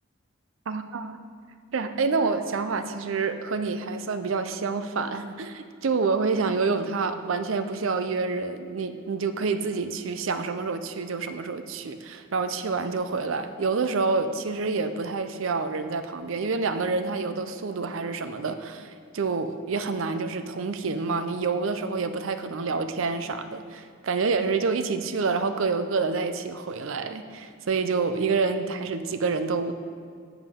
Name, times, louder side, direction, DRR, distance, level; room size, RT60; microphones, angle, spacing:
voice 1, 0.7-1.2 1.7-29.7, right 4 dB, 75° right, 10 dB, 0.5 m, -28 dB
11.0 x 7.2 x 3.6 m, 2.2 s
head